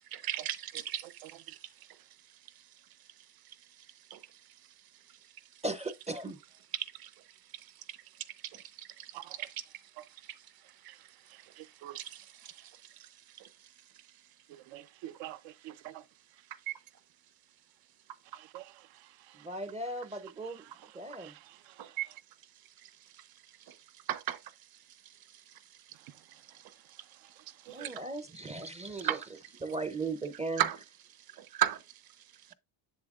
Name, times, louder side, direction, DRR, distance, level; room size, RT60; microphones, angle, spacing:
voice 1, 0.1-1.7 3.4-3.5 4.1-4.4 6.7-7.1 7.5-8.0 8.4-9.6 10.2-10.3 10.8-11.0 11.4-11.5 11.9-13.1 13.4-13.5 16.7-16.8 21.1-21.2 21.8-22.1 22.8-23.3 23.7-23.8 24.1-24.4 25.0-25.5 26.0-26.7 27.7-28.0 29.0-29.3 30.6-30.8 31.3-31.8, right 11 dB, 50° right, 0.9 m, -37 dB
voice 2, 5.6-6.4 19.3-20.6 20.9-21.3 27.7-29.2 29.6-30.6, right 2 dB, 15° right, 0.5 m, -37 dB
voice 3, 9.1-9.5 10.0-10.1 11.6-12.0 14.5-16.0 18.3-19.5 21.0-22.0 27.7-27.9, right 14 dB, 80° right, 0.7 m, -48 dB
7.7 x 7.1 x 2.3 m
cardioid pair, 130°, 46 cm